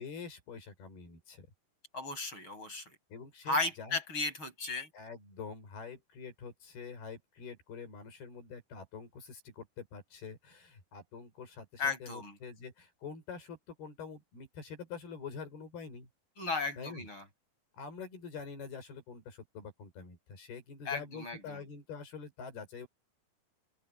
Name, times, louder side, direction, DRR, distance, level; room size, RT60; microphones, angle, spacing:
voice 1, 0.0-1.5 3.1-4.0 4.9-16.1 16.8-17.1 17.7-22.9, left 5 dB, 85° left, 7.4 m, -46 dB
voice 2, 1.9-2.9 3.5-4.9 11.8-12.4 16.4-17.2 20.9-21.6, left 3 dB, 30° left, 8.4 m, -35 dB
open air
omnidirectional pair, 4.3 m